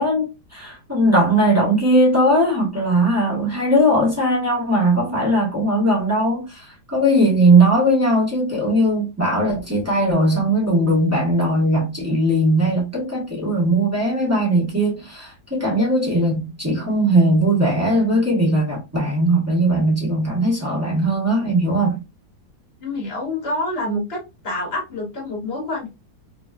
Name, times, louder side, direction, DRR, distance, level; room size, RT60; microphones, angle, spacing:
voice 1, 0.0-6.7 6.9-22.0, right 1 dB, 15° right, 0.6 m, -19 dB
voice 2, 22.8-24.2 24.4-25.9, left 1 dB, 40° left, 1.0 m, -27 dB
3.4 x 2.2 x 2.3 m
omnidirectional pair, 2.2 m